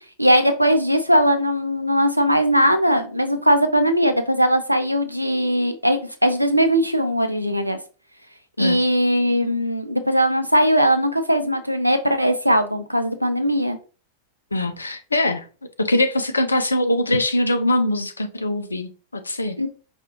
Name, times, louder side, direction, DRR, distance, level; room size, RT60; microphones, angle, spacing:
voice 1, 0.2-7.8 8.6-13.8 19.6-19.7, equal, 90° right, 0.4 m, -19 dB
voice 2, 14.5-15.5 15.8-19.6, left 1 dB, 80° left, 0.4 m, -22 dB
4.9 x 2.3 x 2.8 m
figure-of-eight pair, 90°, 0 cm